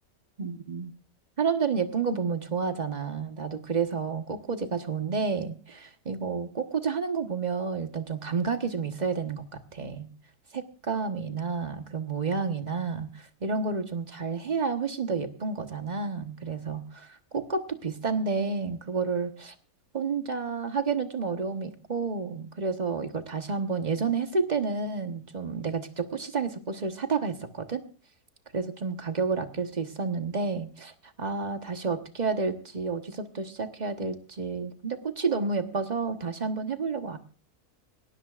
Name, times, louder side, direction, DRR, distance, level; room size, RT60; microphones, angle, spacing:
voice 1, 0.4-0.9 1.4-9.4 9.7-10.1 10.5-19.5 19.9-27.8 28.5-30.9 31.2-37.2, right 5 dB, 30° right, 7 dB, 1.2 m, -30 dB
19.0 x 18.0 x 2.5 m, 0.38 s
omnidirectional pair, 1.6 m